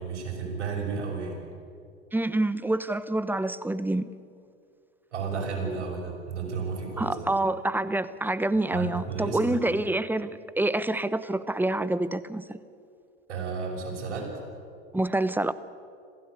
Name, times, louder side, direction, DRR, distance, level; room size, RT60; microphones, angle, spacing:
voice 1, 0.0-1.4 5.1-7.2 8.7-9.6 13.3-14.3, right 5 dB, 80° right, 1 dB, 6.5 m, -32 dB
voice 2, 2.1-4.1 7.0-12.6 14.9-15.5, right 2 dB, 5° right, 16 dB, 0.9 m, -27 dB
26.0 x 16.0 x 8.4 m, 2.3 s
hypercardioid pair, 90°, 35 cm